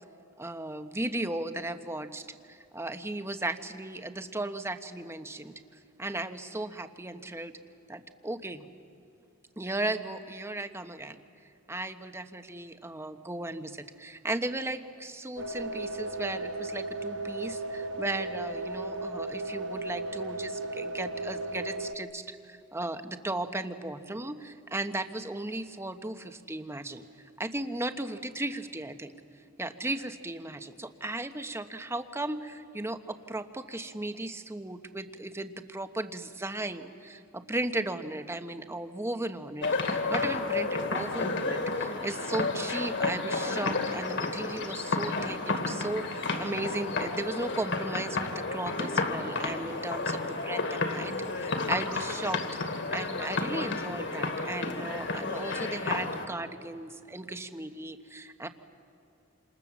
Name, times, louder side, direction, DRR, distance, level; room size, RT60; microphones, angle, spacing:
voice 1, 0.4-5.5 6.0-7.5 7.9-8.7 9.6-11.2 11.7-27.0 27.4-29.1 29.6-52.4 52.9-58.5, right 2 dB, 15° right, 8 dB, 1.1 m, -36 dB
sound 1, 15.4-21.9, right 2 dB, 65° right, 1.1 m, -35 dB
sound 2, 39.6-56.3, left 3 dB, 60° left, 2.4 m, -31 dB
28.5 x 27.5 x 7.4 m, 2.7 s
head